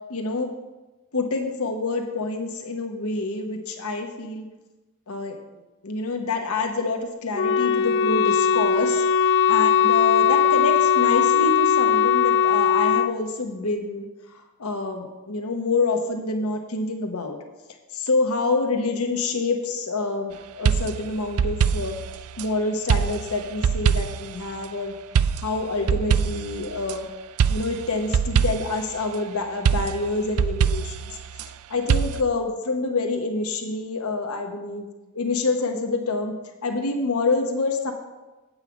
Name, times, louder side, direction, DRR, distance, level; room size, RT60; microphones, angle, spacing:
voice 1, 0.1-0.5 1.1-4.5 5.1-5.4 5.8-17.4 17.9-22.0 22.4-24.9 25.4-27.1 27.5-31.1 31.7-34.9 35.1-37.9, left 3 dB, 85° left, 4 dB, 0.9 m, -27 dB
Wind instrument woodwind instrument, 7.3-13.1, left 8 dB, 55° left, 0.4 m, -19 dB
sound 1, 20.7-22.5 22.9-24.3 25.2-27.0 27.4-28.8 29.7-31.5 31.9-32.2, right 7 dB, 90° right, 0.4 m, -23 dB
8.4 x 5.6 x 6.9 m, 1.1 s
head